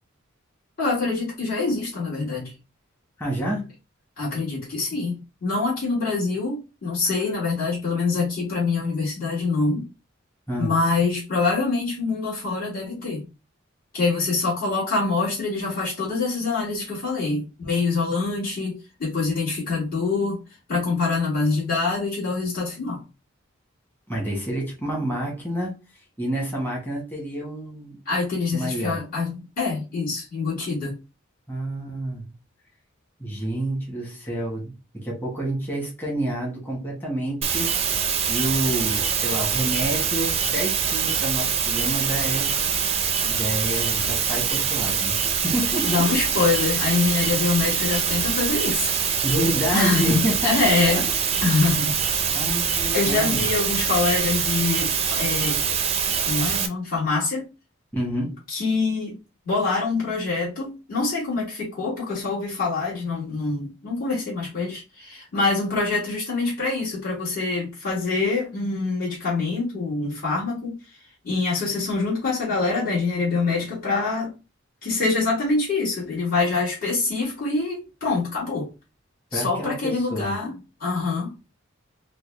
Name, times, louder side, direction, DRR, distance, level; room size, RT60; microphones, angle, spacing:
voice 1, 0.8-2.5 4.2-9.9 10.6-13.2 13.9-20.4 20.7-23.0 28.1-31.0 45.8-48.9 49.7-51.1 51.4-52.0 52.9-55.6 56.2-57.5 58.5-59.2 59.4-71.0 71.2-74.3 74.8-78.7 79.3-81.4, left 3 dB, 45° left, 1.8 m, -25 dB
voice 2, 3.2-3.7 10.5-10.7 24.1-25.7 26.2-28.0 28.5-29.0 31.5-32.3 33.2-34.6 34.9-37.7 38.3-42.5 43.2-46.1 49.2-50.8 52.3-53.4 57.9-58.3 79.3-80.3, right 1 dB, 10° left, 1.2 m, -28 dB
sound 1, 37.4-56.7, right 7 dB, 30° right, 0.4 m, -24 dB
3.8 x 2.2 x 3.2 m
head